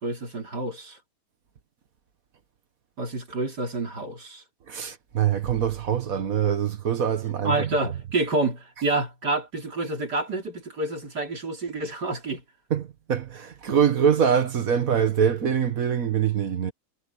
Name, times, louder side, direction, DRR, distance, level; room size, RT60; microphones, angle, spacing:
voice 1, 0.0-1.0 3.0-4.4 7.4-12.4, right 2 dB, 85° right, 4.6 m, -28 dB
voice 2, 4.7-7.7 12.7-16.7, right 8 dB, 60° right, 1.6 m, -24 dB
omnidirectional pair, 1.7 m